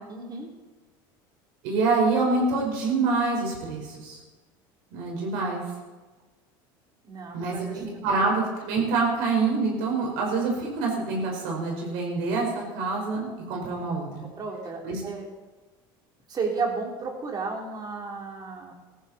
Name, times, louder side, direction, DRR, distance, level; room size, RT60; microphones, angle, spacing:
voice 1, 0.1-0.5 7.0-7.8 14.2-15.3 16.3-18.7, right 4 dB, 35° right, 1 dB, 3.6 m, -33 dB
voice 2, 1.6-4.2 4.9-5.6 7.3-14.3 14.8-15.0, right 3 dB, 75° right, -1 dB, 4.9 m, -26 dB
14.5 x 14.5 x 4.3 m, 1.3 s
supercardioid pair, 100°, 12 cm